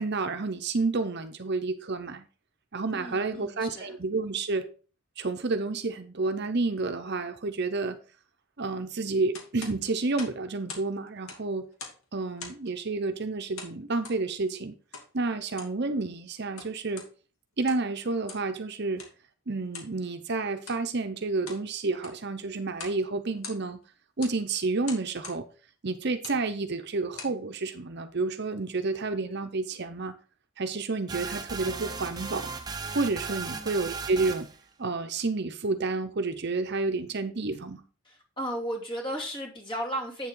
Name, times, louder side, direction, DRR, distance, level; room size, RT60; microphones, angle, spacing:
voice 1, 0.0-2.2 2.7-4.7 5.2-8.0 8.6-11.7 12.1-14.8 15.1-17.1 17.6-19.1 19.5-23.8 24.2-25.4 25.8-30.1 30.6-32.5 32.9-34.5 34.8-37.8, right 3 dB, 50° right, 0.7 m, -30 dB
voice 2, 2.9-3.9 33.5-33.9 38.0-40.3, equal, 25° left, 2.4 m, -35 dB
sound 1, 9.3-10.9 11.2-12.1 12.4-12.7 13.6-14.2 14.9-15.1 15.5-15.8 16.4-17.1 17.5-17.9 18.3-18.5 19.0-19.2 19.7-19.9 20.6-20.8 21.2-21.7 21.9-22.3 22.7-23.0 23.3-23.8 24.2-24.4 24.8-25.4 26.1-26.4 26.9-27.4, left 4 dB, 75° left, 2.5 m, -43 dB
sound 2, 31.1-34.6, right 4 dB, 20° right, 0.7 m, -36 dB
8.9 x 7.2 x 3.8 m
head